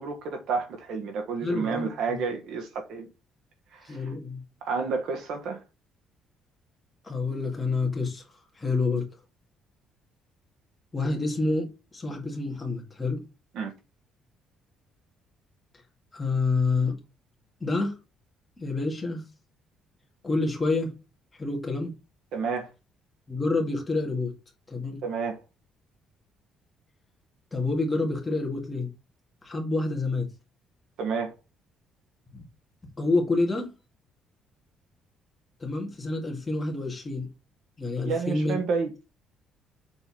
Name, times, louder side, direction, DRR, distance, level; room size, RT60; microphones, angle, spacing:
voice 1, 0.0-3.1 3.7-4.1 4.6-5.6 13.5-13.7 22.3-22.7 25.0-25.4 31.0-31.3 38.0-38.9, right 5 dB, 60° right, 1.4 m, -30 dB
voice 2, 1.4-2.2 3.8-4.4 7.0-8.2 8.6-9.0 10.9-11.7 11.9-13.2 16.1-17.0 17.6-17.9 18.6-19.2 20.2-20.9 21.4-21.9 23.3-24.3 24.7-25.0 27.5-28.9 29.4-30.3 32.3-32.5 33.0-33.7 35.6-37.3 37.8-38.5, left 3 dB, 10° left, 2.1 m, -28 dB
6.9 x 4.0 x 4.1 m
cardioid pair, 180°, 0 cm